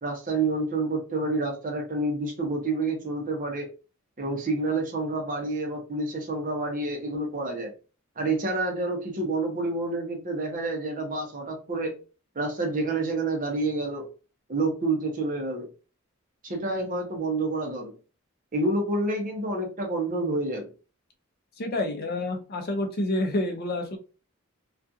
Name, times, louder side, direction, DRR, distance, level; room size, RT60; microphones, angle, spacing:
voice 1, 0.0-3.7 4.2-7.7 8.2-11.9 12.3-14.1 14.5-15.7 16.4-17.9 18.5-20.7, right 2 dB, 40° right, 1 dB, 0.7 m, -28 dB
voice 2, 21.6-24.0, left 1 dB, 50° left, 4 dB, 0.5 m, -28 dB
2.4 x 2.4 x 2.6 m, 0.36 s
head